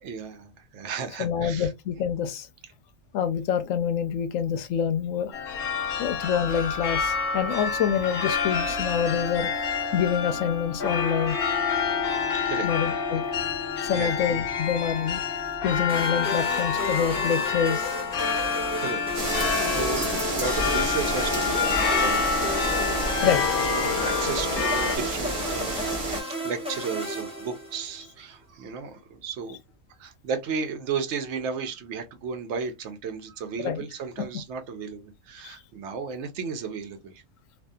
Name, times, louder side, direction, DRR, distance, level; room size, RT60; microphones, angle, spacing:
voice 1, 0.0-1.7 5.9-6.0 12.3-12.7 13.9-14.2 18.7-19.0 19.4-29.6 30.0-37.2, right 5 dB, 70° right, 0.8 m, -34 dB
voice 2, 1.2-2.5 3.1-5.3 6.0-9.5 9.9-11.4 12.6-13.2 13.8-15.2 15.6-17.9 23.2-23.4 33.6-33.8 34.2-34.3 35.4-35.6, left 8 dB, 80° left, 1.0 m, -26 dB
sound 1, 5.3-25.0, left 5 dB, 55° left, 0.8 m, -28 dB
sound 2, 15.9-28.1, equal, 5° right, 0.6 m, -34 dB
sound 3, 19.1-26.2, right 1 dB, 30° right, 0.9 m, -30 dB
2.6 x 2.4 x 2.2 m
omnidirectional pair, 1.3 m